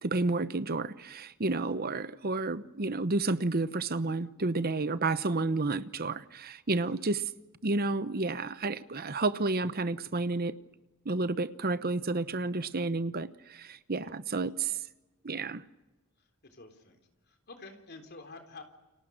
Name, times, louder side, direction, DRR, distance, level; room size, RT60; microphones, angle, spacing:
voice 1, 0.0-7.3 7.6-10.6 11.0-14.7 15.2-15.6, right 3 dB, 45° right, 0.9 m, -31 dB
voice 2, 16.2-17.0 17.2-18.6, left 3 dB, 50° left, 3.7 m, -50 dB
29.5 x 25.0 x 6.5 m
head